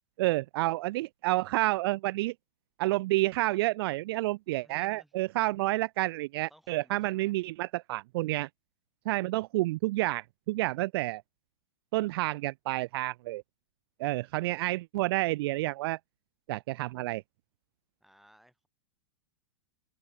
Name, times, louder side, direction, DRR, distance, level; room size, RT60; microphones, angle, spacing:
voice 1, 0.2-2.3 2.8-8.5 9.1-11.2 11.9-13.4 14.0-16.0 16.5-17.2, right 19 dB, 50° right, 0.4 m, -29 dB
voice 2, 4.6-5.1 6.5-7.4 18.0-18.7, equal, ahead, 3.6 m, -60 dB
hypercardioid pair, 130°, 16 cm